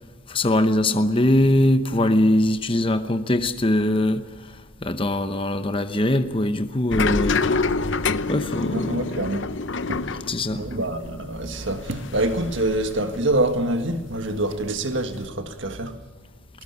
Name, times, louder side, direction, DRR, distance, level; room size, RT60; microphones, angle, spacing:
voice 1, 0.3-7.4 8.3-9.2 10.3-10.6, left 1 dB, 25° left, 0.8 m, -22 dB
sound 1, 6.9-13.6 13.9-15.3, left 4 dB, 55° left, 0.7 m, -27 dB
voice 2, 8.7-9.5 9.9-10.1 10.5-16.0, right 1 dB, 55° right, 1.7 m, -26 dB
20.0 x 19.5 x 9.5 m
head